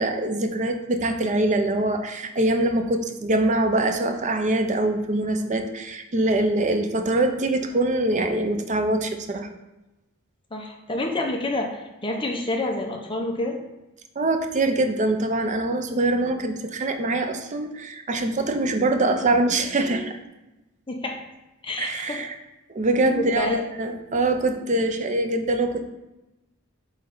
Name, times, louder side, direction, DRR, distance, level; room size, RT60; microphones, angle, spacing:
voice 1, 0.0-9.5 14.2-20.2 21.8-22.3 22.7-25.9, right 2 dB, 35° right, 7 dB, 0.6 m, -24 dB
voice 2, 10.5-13.6 20.9-21.2 21.6-22.2 23.2-23.6, left 2 dB, 25° left, 2 dB, 0.8 m, -28 dB
8.2 x 3.2 x 3.9 m, 1.0 s
head